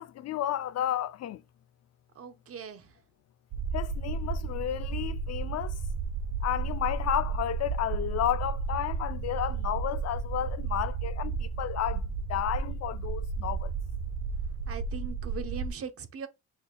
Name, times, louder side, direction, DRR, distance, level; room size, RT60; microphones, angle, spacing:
voice 1, 0.0-1.4 3.7-5.8 6.4-12.0 12.3-13.7, left 11 dB, 60° left, 0.5 m, -32 dB
voice 2, 2.1-3.0 14.7-16.3, right 7 dB, 50° right, 0.8 m, -40 dB
sound 1, 3.5-15.7, right 5 dB, 80° right, 0.9 m, -33 dB
5.6 x 4.2 x 2.2 m
cardioid pair, 90°, 30 cm